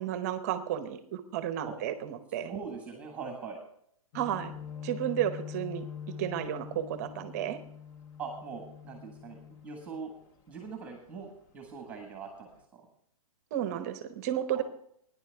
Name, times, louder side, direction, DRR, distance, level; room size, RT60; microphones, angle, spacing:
voice 1, 0.0-2.5 4.1-4.5 4.8-5.8 6.2-7.6 13.5-14.6, right 11 dB, 30° right, 11 dB, 0.8 m, -32 dB
voice 2, 2.5-3.6 8.2-10.1 10.5-11.3 11.5-12.8 14.5-14.6, right 5 dB, 10° right, 3 dB, 1.4 m, -41 dB
sound 1, 4.1-10.6 11.0-11.2 11.7-12.2 12.5-12.6, left 8 dB, 15° left, 0.5 m, -44 dB
19.0 x 10.0 x 3.5 m, 0.69 s
hypercardioid pair, 170°, 18 cm